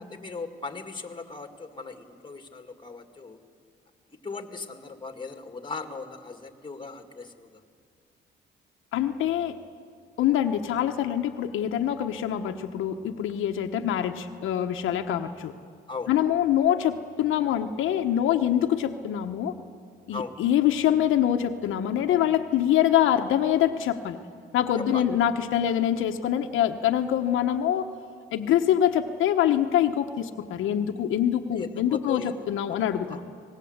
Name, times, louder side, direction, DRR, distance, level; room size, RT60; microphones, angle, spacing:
voice 1, 0.1-3.4 4.2-7.6 15.9-16.1 20.1-20.4 24.8-25.0 31.6-32.3 33.1-33.2, left 4 dB, 25° left, 6 dB, 2.2 m, -38 dB
voice 2, 8.9-9.5 10.2-15.5 16.1-19.5 20.1-24.2 24.5-27.9 28.3-33.2, left 10 dB, 85° left, 5 dB, 1.2 m, -24 dB
26.0 x 19.0 x 8.1 m, 2.2 s
cardioid pair, 90°, 20 cm